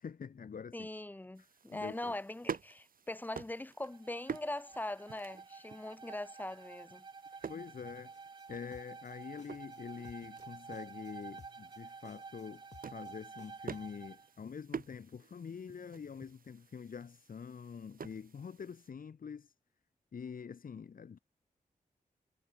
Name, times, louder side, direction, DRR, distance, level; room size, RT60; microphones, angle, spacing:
voice 1, 0.0-0.9 1.7-2.2 7.5-8.1 8.5-19.5 20.1-21.2, left 6 dB, 70° left, 2.4 m, -46 dB
voice 2, 0.7-7.1, left 1 dB, 10° left, 0.5 m, -41 dB
sound 1, 1.4-18.9, right 6 dB, 75° right, 3.5 m, -49 dB
Bowed string instrument, 3.8-14.3, right 4 dB, 30° right, 0.5 m, -51 dB
sound 2, 8.1-13.9, left 5 dB, 55° left, 1.6 m, -60 dB
wide cardioid pair, 170°, 15 cm